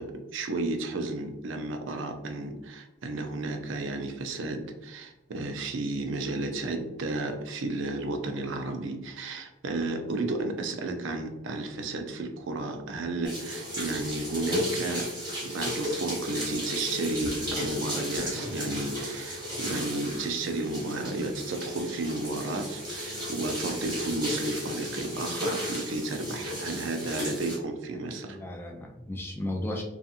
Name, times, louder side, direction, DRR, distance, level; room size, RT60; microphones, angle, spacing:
voice 1, 0.0-15.1 15.4-28.4, right 2 dB, 70° right, 5 dB, 0.4 m, -33 dB
sound 1, 13.2-27.6, equal, 20° right, 0.9 m, -34 dB
voice 2, 27.9-29.8, left 1 dB, 10° left, 1 dB, 0.3 m, -35 dB
2.7 x 2.4 x 2.4 m, 0.96 s
head